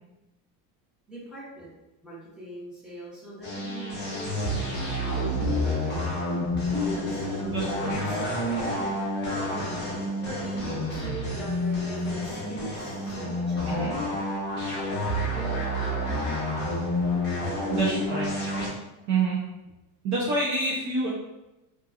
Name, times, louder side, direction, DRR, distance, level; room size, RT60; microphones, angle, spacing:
voice 1, 1.1-1.7 2.0-6.2 6.8-8.1 8.5-8.8 9.3-9.6 10.2-14.1 14.5-14.7 15.3-16.3 17.7-18.0, right 1 dB, ahead, -9 dB, 0.9 m, -41 dB
sound 1, 3.4-18.7, left 1 dB, 20° left, 0.9 m, -29 dB
voice 2, 7.5-7.9 13.7-13.9 17.7-18.3 19.1-19.4 20.0-21.1, right 3 dB, 40° right, -5 dB, 0.5 m, -27 dB
2.7 x 2.5 x 2.4 m, 0.98 s
cardioid pair, 150°, 45 cm